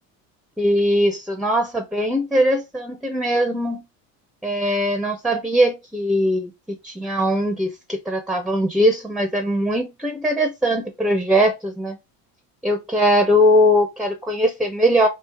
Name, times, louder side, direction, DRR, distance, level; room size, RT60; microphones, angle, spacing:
voice 1, 0.6-3.8 4.4-6.5 6.8-12.0 12.6-15.1, equal, ahead, 0.4 m, -20 dB
3.1 x 2.8 x 3.3 m
supercardioid pair, 95°, 41 cm